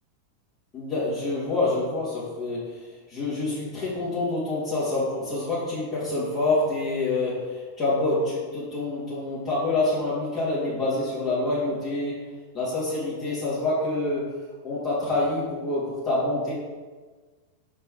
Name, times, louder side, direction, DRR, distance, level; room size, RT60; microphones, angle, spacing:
voice 1, 0.7-12.3 12.5-14.3 14.6-16.5, left 2 dB, 30° left, -9 dB, 2.1 m, -27 dB
5.9 x 4.5 x 4.7 m, 1.4 s
figure-of-eight pair, 90°, 0 cm